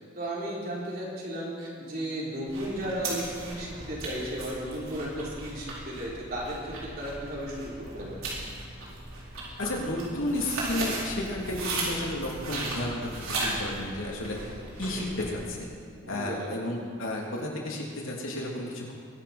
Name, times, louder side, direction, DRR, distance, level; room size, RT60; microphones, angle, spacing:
voice 1, 0.0-8.3 16.0-16.7, right 1 dB, 45° right, -5 dB, 3.9 m, -35 dB
sound 1, 2.5-15.4, right 2 dB, 85° right, 4.3 m, -36 dB
voice 2, 9.6-14.4 14.8-15.7 16.1-18.9, left 1 dB, 80° left, -2 dB, 3.1 m, -32 dB
22.0 x 11.5 x 4.4 m, 2.3 s
head